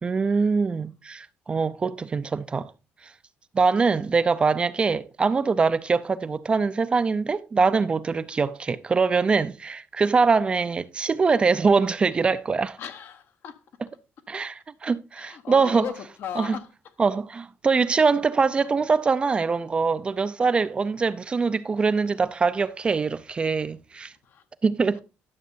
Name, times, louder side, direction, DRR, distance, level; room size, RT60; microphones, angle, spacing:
voice 1, 0.0-2.7 3.0-3.1 3.5-12.8 14.3-15.9 16.4-16.5 17.0-24.1 24.6-25.0, right 4 dB, 25° right, 0.4 m, -23 dB
voice 2, 12.8-13.6 15.1-16.7 24.2-24.4, left 8 dB, 60° left, 0.9 m, -37 dB
12.0 x 6.5 x 2.6 m
cardioid pair, 135°, 4 cm